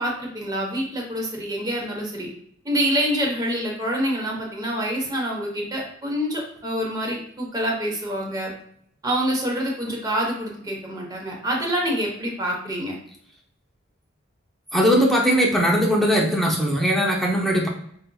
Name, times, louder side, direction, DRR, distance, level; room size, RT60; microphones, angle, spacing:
voice 1, 0.0-2.3 2.6-8.5 9.0-13.0, equal, 20° right, -1 dB, 1.0 m, -26 dB
voice 2, 14.7-17.7, equal, ahead, -1 dB, 0.6 m, -19 dB
5.3 x 2.7 x 2.3 m, 0.66 s
head